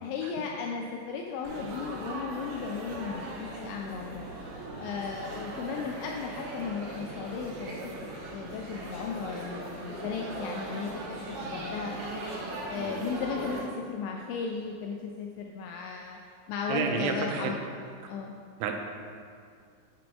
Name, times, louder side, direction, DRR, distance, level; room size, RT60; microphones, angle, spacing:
voice 1, 0.0-4.3 4.8-7.8 8.0-12.0 12.7-16.2 16.5-17.6 18.1-18.3, left 5 dB, 85° left, 1 dB, 2.7 m, -35 dB
Laughter / Chatter / Crowd, 1.4-13.6, right 2 dB, 65° right, 2.9 m, -39 dB
voice 2, 16.7-17.5 18.6-18.7, right 5 dB, 85° right, 3 dB, 3.0 m, -29 dB
9.5 x 4.5 x 5.2 m, 2.2 s
omnidirectional pair, 5.5 m